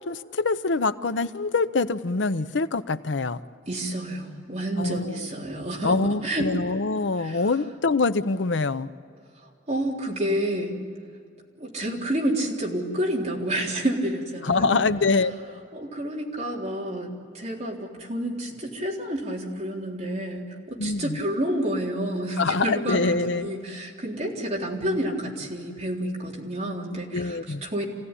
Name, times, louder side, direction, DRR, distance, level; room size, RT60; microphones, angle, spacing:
voice 1, 0.0-3.4 4.8-5.2 5.8-8.9 14.4-15.6 20.8-21.2 22.4-23.5 27.1-27.6, left 3 dB, 80° left, 13 dB, 0.7 m, -25 dB
voice 2, 3.7-6.5 7.2-7.5 9.7-10.8 11.6-14.8 15.7-27.9, right 1 dB, 35° right, -3 dB, 3.8 m, -29 dB
27.0 x 17.0 x 9.9 m, 2.3 s
head